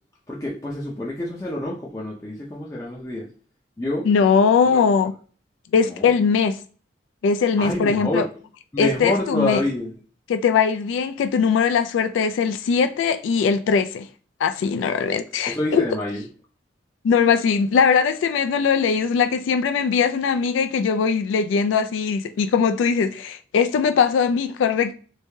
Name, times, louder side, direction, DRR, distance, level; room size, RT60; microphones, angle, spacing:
voice 1, 0.3-3.3 3.8-4.1 4.7-4.8 5.8-6.1 7.6-8.3 8.7-10.0 15.5-16.2, left 1 dB, 15° left, 0.5 m, -27 dB
voice 2, 4.1-5.1 5.7-6.6 7.2-8.2 8.8-9.6 10.3-14.1 14.4-15.8 17.0-24.9, left 6 dB, 85° left, 0.3 m, -20 dB
3.2 x 2.6 x 3.3 m
head